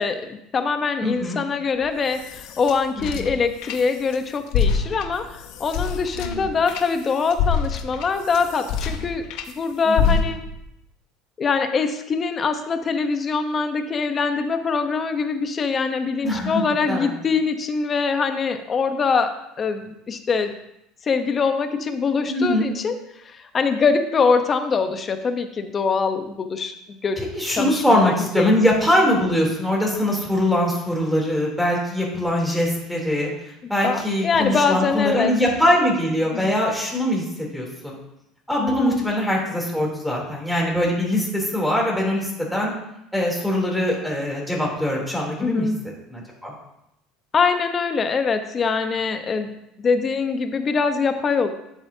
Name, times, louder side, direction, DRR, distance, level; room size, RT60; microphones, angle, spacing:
voice 1, 0.0-9.3 9.6-10.4 11.4-20.5 21.0-22.9 23.2-27.2 27.5-28.5 33.8-35.3 36.3-36.5 38.6-39.0 45.4-45.8 47.3-49.5 49.8-51.5, left 5 dB, 35° left, 8 dB, 1.0 m, -23 dB
voice 2, 1.0-1.4 3.0-3.3 6.1-6.5 9.9-10.2 16.2-16.6 16.9-17.1 22.3-22.6 27.2-33.3 33.7-37.9 38.5-42.7 43.1-45.7 46.1-46.5, left 1 dB, ahead, -4 dB, 3.3 m, -22 dB
sound 1, 1.8-4.2 4.5-9.5 10.0-10.6, left 6 dB, 70° left, 0.8 m, -26 dB
11.0 x 7.3 x 2.8 m, 0.83 s
supercardioid pair, 100°, 0 cm